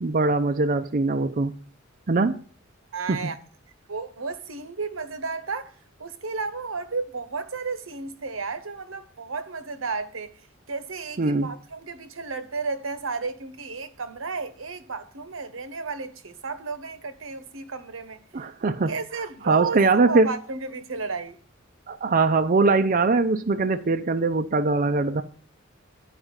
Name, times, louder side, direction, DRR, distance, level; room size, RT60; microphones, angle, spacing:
voice 1, 0.0-1.5 2.1-2.4 3.1-3.3 11.2-11.5 18.3-19.0 19.4-20.3 21.9-25.2, right 3 dB, 45° right, 0.6 m, -22 dB
voice 2, 2.9-3.4 3.9-5.7 6.0-10.3 10.7-18.2 18.9-21.4, right 4 dB, 80° right, 1.0 m, -33 dB
10.5 x 5.0 x 8.0 m
head